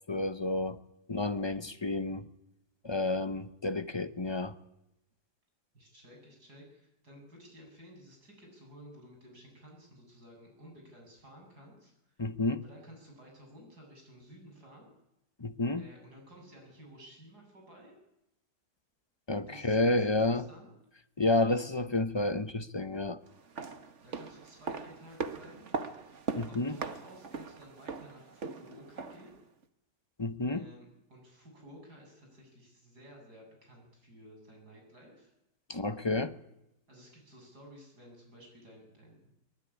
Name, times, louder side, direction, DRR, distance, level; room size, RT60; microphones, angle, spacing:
voice 1, 0.1-0.8 1.1-2.3 2.8-4.5 12.2-12.6 15.4-15.9 19.3-20.5 21.2-23.2 26.4-26.8 30.2-30.7 35.7-36.4, left 2 dB, 25° left, 0.6 m, -30 dB
voice 2, 5.7-12.2 12.6-14.9 15.8-17.9 19.5-20.8 24.0-25.7 26.4-29.4 30.5-35.3 36.9-39.3, equal, 65° right, 8.6 m, -54 dB
sound 1, 23.3-29.4 29.6-29.7, right 4 dB, 45° right, 1.6 m, -40 dB
23.0 x 20.5 x 10.0 m
omnidirectional pair, 1.8 m